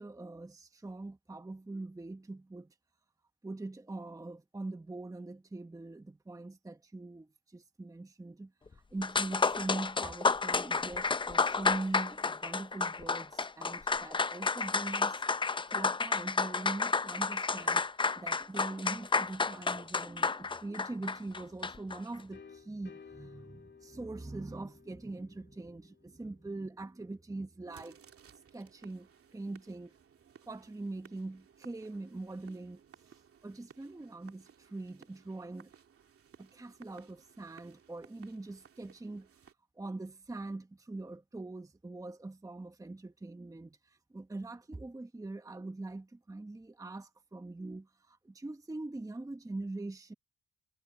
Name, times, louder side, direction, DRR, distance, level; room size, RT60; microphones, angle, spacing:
voice 1, 0.0-2.7 3.4-15.2 15.7-17.9 18.2-28.0 28.5-29.9 30.5-35.7 36.4-39.3 39.8-50.1, right 2 dB, 10° right, 1.1 m, -42 dB
sound 1, 8.7-8.8 9.0-22.0, left 4 dB, 15° left, 0.5 m, -31 dB
sound 2, 21.2-26.9, left 6 dB, 40° left, 2.3 m, -57 dB
sound 3, 27.6-39.5, right 7 dB, 50° right, 2.6 m, -60 dB
cardioid pair, 90°, 30 cm